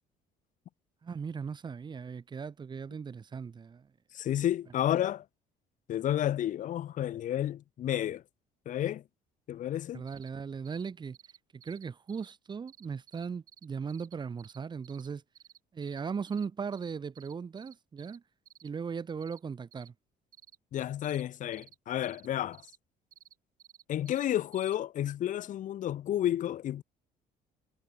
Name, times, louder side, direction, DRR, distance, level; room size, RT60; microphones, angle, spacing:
voice 1, 1.0-3.9 9.9-11.2 11.5-15.2 15.7-18.2 18.6-19.9, right 6 dB, 25° right, 0.8 m, -38 dB
voice 2, 4.1-5.2 5.9-8.2 8.7-9.0 9.5-10.0 20.7-22.6 23.9-26.8, left 11 dB, 50° left, 0.6 m, -31 dB
sound 1, 10.1-10.3 10.7-10.9 11.1-12.3 12.7-14.6 14.8-15.1 15.4-16.0 16.3-16.5 16.7-16.9 17.2-18.2 18.5-18.7 19.2-19.4 19.7-19.9 20.3-20.6 21.0-21.2 21.5-21.8 22.0-22.3 22.5-22.8 23.1-24.3 24.5-24.8, right 10 dB, 55° right, 2.9 m, -56 dB
cardioid pair, 110°, 17 cm